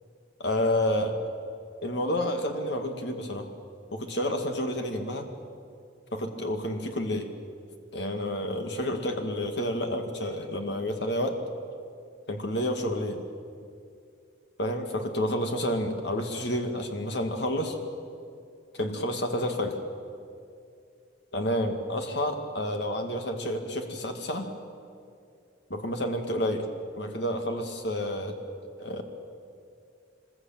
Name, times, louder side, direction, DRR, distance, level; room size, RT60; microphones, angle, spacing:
voice 1, 0.4-1.2 1.8-3.5 3.9-5.3 6.1-7.3 7.9-11.4 12.3-13.2 14.6-17.8 18.7-19.8 21.3-24.5 25.7-26.7 26.9-28.4 28.8-29.0, left 1 dB, 60° left, 4 dB, 2.4 m, -29 dB
25.5 x 21.5 x 9.1 m, 2.4 s
head